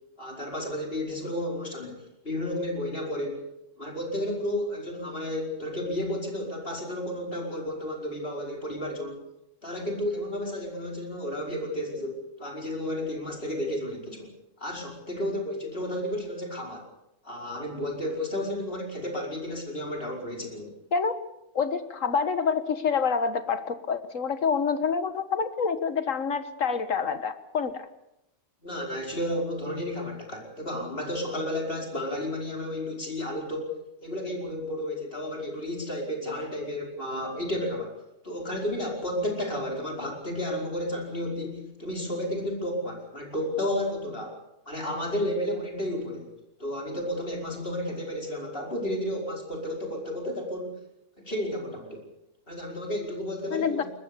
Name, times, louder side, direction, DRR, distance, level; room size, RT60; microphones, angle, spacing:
voice 1, 0.2-3.5 3.8-9.2 9.6-14.3 14.6-16.9 17.2-20.7 28.6-37.9 38.2-44.4 44.7-46.3 46.6-50.8 51.2-52.0 52.5-53.8, left 1 dB, 45° left, 0 dB, 5.3 m, -32 dB
voice 2, 21.5-27.9 53.5-53.8, left 6 dB, 75° left, 10 dB, 1.8 m, -27 dB
22.0 x 20.5 x 6.9 m, 0.85 s
omnidirectional pair, 1.4 m